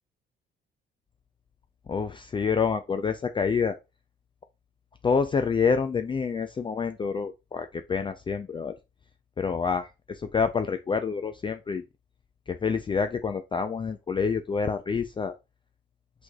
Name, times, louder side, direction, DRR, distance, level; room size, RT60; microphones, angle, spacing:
voice 1, 1.9-3.8 5.0-8.8 9.4-11.8 12.5-15.3, left 5 dB, 25° left, 0.3 m, -27 dB
6.1 x 3.2 x 2.3 m
cardioid pair, 90°, 20 cm